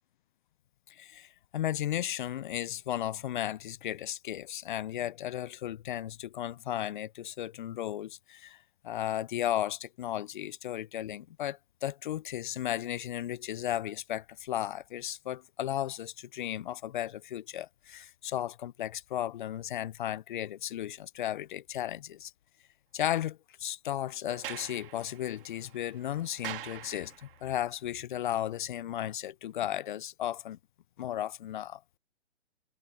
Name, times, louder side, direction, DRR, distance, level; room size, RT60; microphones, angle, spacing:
voice 1, 0.9-22.3 22.9-30.6 31.0-31.8, left 12 dB, 45° left, 0.4 m, -35 dB
Sliding door, 24.2-27.5, right 12 dB, 50° right, 3.4 m, -44 dB
hypercardioid pair, 150°, 35 cm